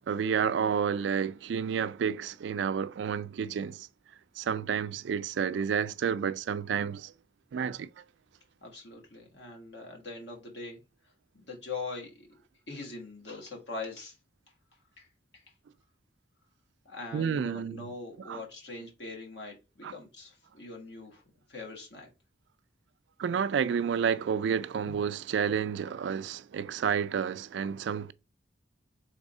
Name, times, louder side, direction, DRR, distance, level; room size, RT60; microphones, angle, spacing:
voice 1, 0.1-3.9 4.4-7.1 7.5-7.9 17.1-17.8 18.3-18.4 19.8-19.9 23.2-28.1, right 7 dB, 75° right, 0.3 m, -30 dB
voice 2, 8.6-10.8 11.3-12.3 12.7-14.2 15.0-15.1 15.3-15.4 16.8-21.2 21.5-22.1, left 3 dB, 70° left, 1.5 m, -42 dB
3.6 x 3.3 x 4.1 m
head